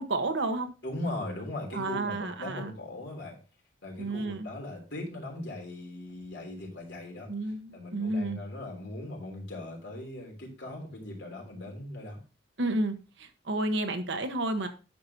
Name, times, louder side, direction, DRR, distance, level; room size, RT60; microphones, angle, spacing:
voice 1, 0.0-0.7 1.7-2.7 4.0-4.5 7.3-8.4 12.6-14.7, right 2 dB, 70° right, 6 dB, 1.2 m, -31 dB
voice 2, 0.8-3.4 3.8-7.3 7.7-12.2, left 1 dB, 65° left, 1 dB, 3.4 m, -39 dB
10.5 x 6.7 x 2.8 m, 0.33 s
head